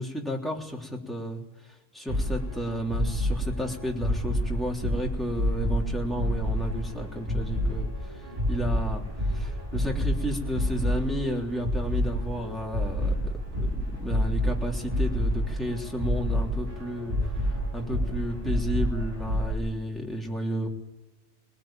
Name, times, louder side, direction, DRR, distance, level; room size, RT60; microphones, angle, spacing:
voice 1, 0.0-1.4 1.9-7.9 8.5-9.0 9.3-13.1 13.5-17.2 17.7-20.7, equal, ahead, -2 dB, 3.4 m, -32 dB
sound 1, 2.1-19.5, equal, 30° right, 5.4 m, -29 dB
21.5 x 20.0 x 9.1 m, 1.1 s
omnidirectional pair, 1.2 m